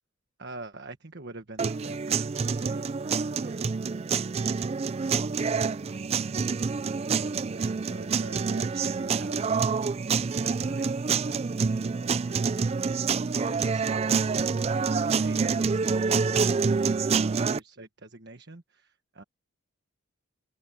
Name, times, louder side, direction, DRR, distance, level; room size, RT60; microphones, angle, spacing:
voice 1, 0.4-3.6 5.3-5.5 7.2-10.1 10.3-12.9 13.4-14.5 14.9-19.2, right 2 dB, 50° right, 1.4 m, -46 dB
sound 1, 1.6-17.6, right 5 dB, 25° right, 0.3 m, -27 dB
open air
head